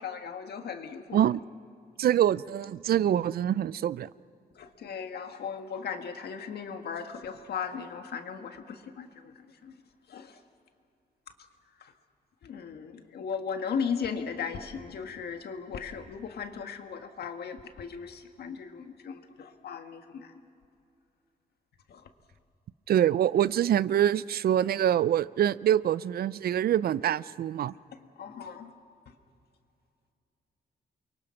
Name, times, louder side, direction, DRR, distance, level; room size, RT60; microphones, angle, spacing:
voice 1, 0.0-1.2 4.6-9.1 9.6-9.7 10.1-10.3 12.4-20.3 21.9-22.0 28.2-28.7, left 6 dB, 75° left, 6 dB, 1.7 m, -37 dB
voice 2, 2.0-4.1 22.9-27.7, right 10 dB, 70° right, 19 dB, 0.4 m, -25 dB
29.0 x 23.5 x 5.8 m, 2.6 s
cardioid pair, 120°, 17 cm